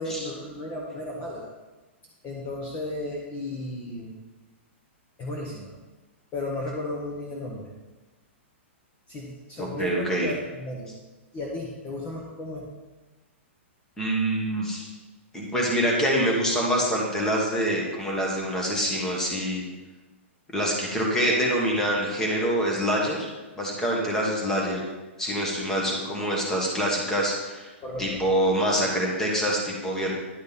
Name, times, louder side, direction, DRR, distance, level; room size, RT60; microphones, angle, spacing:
voice 1, 0.0-1.5 2.2-4.2 5.2-5.7 6.3-7.7 9.1-10.9 11.3-12.7 27.8-28.2, left 1 dB, 25° left, -2 dB, 1.1 m, -34 dB
voice 2, 9.6-10.3 14.0-14.9 15.3-19.6 20.5-23.3 23.6-24.8 25.2-27.7 28.0-30.1, equal, 5° left, -2 dB, 1.4 m, -25 dB
10.5 x 5.1 x 4.1 m, 1.2 s
hypercardioid pair, 155°, 7 cm